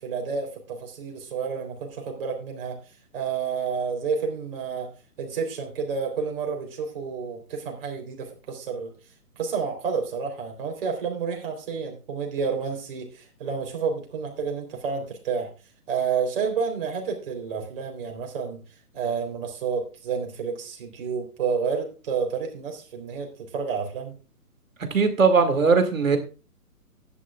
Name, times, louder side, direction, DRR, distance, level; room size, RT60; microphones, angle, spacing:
voice 1, 0.0-2.7 3.1-4.9 5.2-8.9 9.3-15.5 15.9-18.6 18.9-24.1, right 6 dB, 35° right, 3.5 m, -30 dB
voice 2, 24.9-26.2, right 5 dB, 55° right, 2.2 m, -19 dB
15.5 x 10.0 x 2.3 m
figure-of-eight pair, 135°, 47 cm